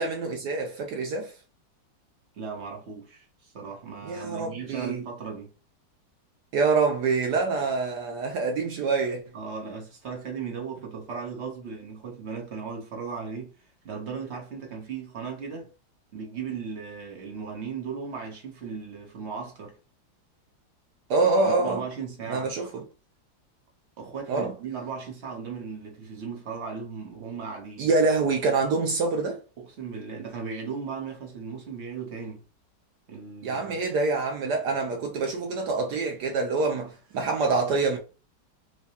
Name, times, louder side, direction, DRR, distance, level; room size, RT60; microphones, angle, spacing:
voice 1, 0.0-1.3 4.0-5.0 6.5-9.2 21.1-21.8 22.3-22.7 24.3-24.5 27.8-29.4 33.4-38.0, right 3 dB, 70° right, 1.1 m, -25 dB
voice 2, 2.3-5.5 9.3-15.7 16.1-19.8 21.4-22.6 24.0-27.9 29.6-32.4 33.1-33.8, right 6 dB, 45° right, 1.0 m, -37 dB
4.6 x 2.2 x 2.7 m
omnidirectional pair, 2.2 m